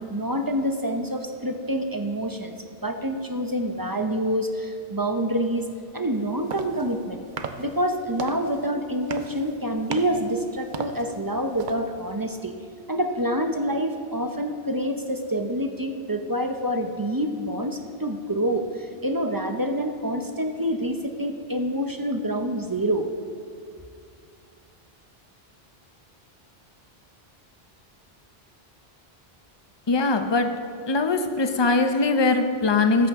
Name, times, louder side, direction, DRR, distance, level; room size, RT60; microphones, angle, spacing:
voice 1, 0.0-2.5 2.8-5.7 5.9-7.2 7.6-12.5 12.9-23.1, equal, 25° right, 5 dB, 0.6 m, -27 dB
sound 1, 6.1-12.2, right 5 dB, 55° right, 0.8 m, -38 dB
voice 2, 29.9-30.5 30.9-33.1, left 3 dB, 30° left, 7 dB, 0.7 m, -21 dB
14.0 x 13.5 x 3.6 m, 2.4 s
omnidirectional pair, 1.1 m